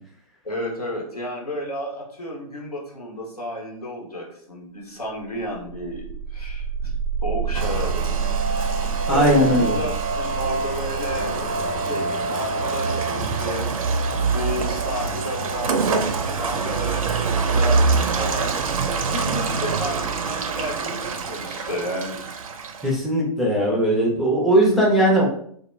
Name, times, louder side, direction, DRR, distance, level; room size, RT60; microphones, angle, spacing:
voice 1, 0.4-6.7 7.2-8.2 9.1-13.7 14.3-15.9 16.3-18.6 19.1-22.2, equal, 90° left, -1 dB, 0.9 m, -32 dB
sound 1, 5.3-15.2, right 6 dB, 70° left, 0.5 m, -30 dB
Rain, 7.5-22.9, right 4 dB, 65° right, 0.4 m, -25 dB
voice 2, 9.1-9.8 13.2-13.3 22.8-25.3, right 1 dB, ahead, -4 dB, 0.3 m, -19 dB
2.2 x 2.1 x 3.0 m, 0.64 s
figure-of-eight pair, 120°, 19 cm